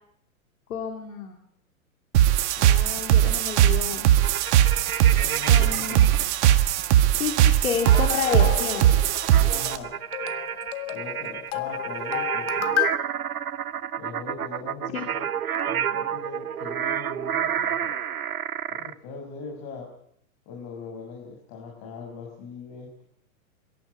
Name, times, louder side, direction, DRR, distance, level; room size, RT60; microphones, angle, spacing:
voice 1, 0.7-1.4 2.6-4.1 5.5-6.2 7.2-9.0 14.9-15.1, left 7 dB, 70° left, 3 dB, 2.9 m, -30 dB
sound 1, 2.1-9.8, right 12 dB, 50° right, 1.7 m, -20 dB
sound 2, 4.2-6.2 7.8-18.9, right 9 dB, 85° right, 1.0 m, -30 dB
voice 2, 5.2-6.0 9.4-9.9 10.9-12.9 14.0-15.3 15.7-17.9 18.7-19.9 20.5-23.0, left 4 dB, 40° left, 0 dB, 5.8 m, -40 dB
sound 3, 7.9-13.0, left 15 dB, 55° left, 1.7 m, -32 dB
23.5 x 13.5 x 9.5 m, 0.71 s
hypercardioid pair, 115°, 42 cm